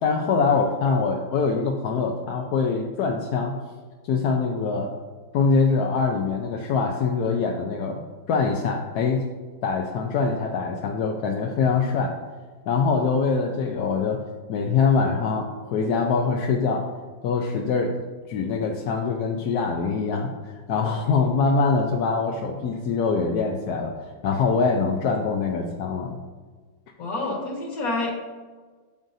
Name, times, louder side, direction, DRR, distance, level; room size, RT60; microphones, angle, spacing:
voice 1, 0.0-3.6 4.1-4.9 5.3-8.0 8.3-9.2 9.6-12.2 12.7-14.2 14.5-16.9 17.2-18.0 18.3-26.2, left 4 dB, 65° left, 2 dB, 1.0 m, -24 dB
voice 2, 27.0-28.3, left 2 dB, 50° left, -1 dB, 2.0 m, -28 dB
8.8 x 7.6 x 2.7 m, 1.4 s
omnidirectional pair, 2.1 m